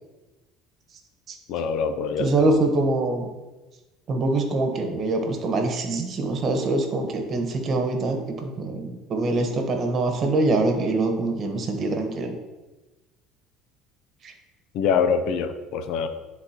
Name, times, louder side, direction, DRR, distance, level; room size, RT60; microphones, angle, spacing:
voice 1, 1.5-2.5 14.7-16.1, left 6 dB, 70° left, 9 dB, 0.6 m, -24 dB
voice 2, 2.2-3.3 4.1-12.3 14.2-14.3, right 2 dB, 45° right, 4 dB, 1.2 m, -24 dB
10.5 x 4.0 x 3.0 m, 1.1 s
supercardioid pair, 100°, 0 cm